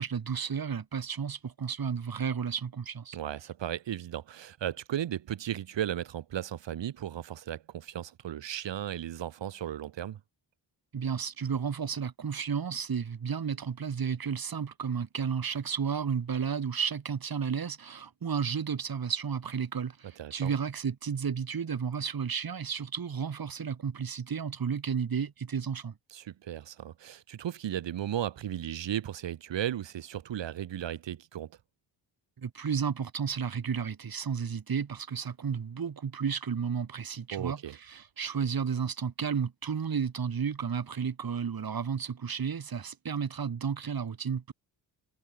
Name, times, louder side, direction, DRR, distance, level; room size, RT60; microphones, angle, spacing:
voice 1, 0.0-3.2 10.9-25.9 32.4-44.5, right 7 dB, 55° right, 6.9 m, -32 dB
voice 2, 3.1-10.2 20.2-20.5 26.1-31.5 37.3-37.8, right 11 dB, 80° right, 2.6 m, -35 dB
cardioid pair, 100°, 43 cm